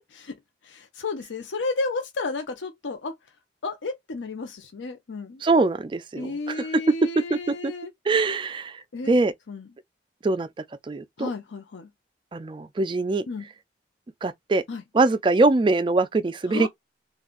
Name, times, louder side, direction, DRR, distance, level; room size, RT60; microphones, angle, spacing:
voice 1, 0.6-3.1 3.6-5.4 6.1-7.9 8.9-9.2 9.5-9.7 11.2-11.9 13.3-13.5 14.7-14.8 16.5-16.7, left 3 dB, 85° left, 0.6 m, -32 dB
voice 2, 5.4-6.8 7.3-7.7 8.1-8.7 9.1-9.3 10.2-10.5 10.9-11.3 12.3-13.2 14.2-14.6 14.9-16.7, right 3 dB, 25° right, 0.3 m, -23 dB
3.7 x 2.3 x 2.4 m
head